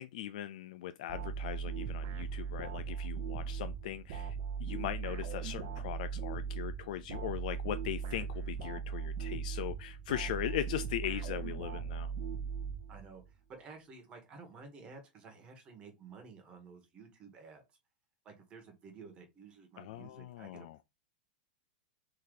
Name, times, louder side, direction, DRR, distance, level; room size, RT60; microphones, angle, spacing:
voice 1, 0.0-12.1 19.8-20.8, left 12 dB, 60° left, 0.3 m, -39 dB
sound 1, 1.1-13.3, right 6 dB, 45° right, 0.8 m, -39 dB
voice 2, 10.4-10.7 12.9-17.6 18.2-20.8, right 4 dB, 20° right, 1.4 m, -53 dB
3.9 x 2.7 x 4.8 m
supercardioid pair, 155°, 5 cm